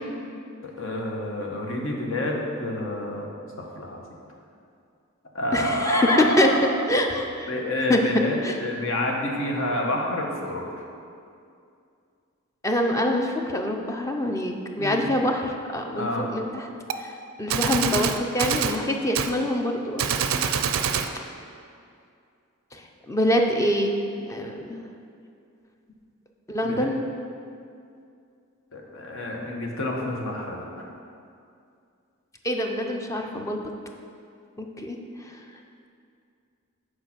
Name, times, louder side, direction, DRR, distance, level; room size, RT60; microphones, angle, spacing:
voice 1, 0.6-3.3 3.6-4.2 5.3-6.7 7.5-10.9 14.8-15.1 15.9-16.3 26.6-26.9 28.7-30.9, left 1 dB, 65° left, 0 dB, 1.0 m, -28 dB
voice 2, 5.5-6.5 6.9-7.5 7.9-8.0 8.4-8.6 12.6-16.7 17.0-17.1 17.4-20.5 22.7-24.9 26.5-27.0 32.4-33.6 34.6-35.0 35.2-35.4, left 1 dB, 15° left, 3 dB, 0.5 m, -25 dB
Gunshot gunfire, 16.9-17.0 17.5-18.8 19.2-19.3 20.0-21.1, right 7 dB, 70° right, 0.4 m, -25 dB
6.5 x 4.7 x 6.0 m, 2.4 s
head